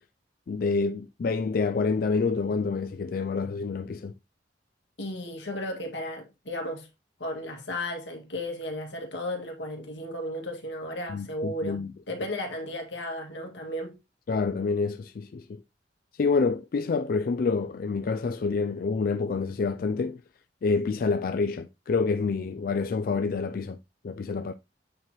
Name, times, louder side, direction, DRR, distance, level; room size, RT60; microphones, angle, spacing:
voice 1, 0.5-4.1 11.1-11.9 14.3-15.6 16.2-20.2 20.6-23.8 24.0-24.5, left 4 dB, 50° left, 0.3 m, -27 dB
voice 2, 5.0-6.9 7.2-11.8 12.1-14.0, left 1 dB, 85° left, 2.1 m, -34 dB
8.5 x 4.7 x 3.0 m
head